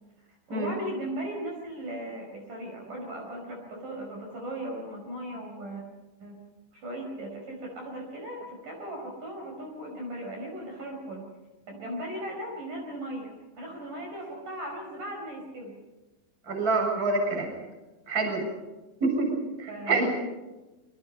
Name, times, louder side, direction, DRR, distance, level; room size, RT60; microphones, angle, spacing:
voice 1, 0.5-5.8 6.2-6.4 6.7-11.2 11.7-15.7 19.7-20.1, right 1 dB, 45° right, 0 dB, 6.4 m, -37 dB
voice 2, 16.5-17.5 18.1-18.5 19.0-20.1, right 3 dB, 20° right, 2 dB, 7.2 m, -27 dB
28.0 x 25.5 x 5.6 m, 1.1 s
omnidirectional pair, 5.6 m